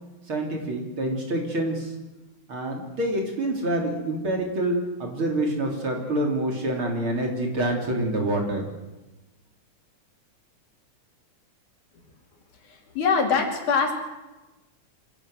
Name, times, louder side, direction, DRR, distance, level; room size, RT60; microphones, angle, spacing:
voice 1, 0.3-1.9 2.5-8.6, right 1 dB, 45° right, 1 dB, 3.9 m, -27 dB
voice 2, 12.6-13.9, left 5 dB, 85° left, 2 dB, 4.5 m, -23 dB
26.5 x 17.0 x 6.5 m, 1.1 s
omnidirectional pair, 3.4 m